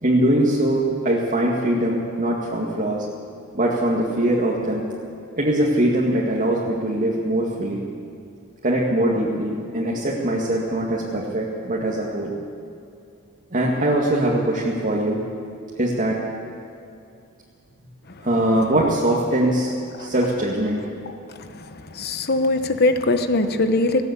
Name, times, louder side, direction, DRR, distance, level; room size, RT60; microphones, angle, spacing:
voice 1, 0.0-3.1 3.5-4.9 5.4-7.8 8.6-12.3 13.5-15.2 15.8-16.2 18.2-19.7 20.0-20.8, right 1 dB, 40° right, -4 dB, 2.1 m, -22 dB
voice 2, 22.0-24.0, left 2 dB, 50° left, 8 dB, 1.1 m, -20 dB
19.5 x 16.5 x 8.2 m, 2.5 s
head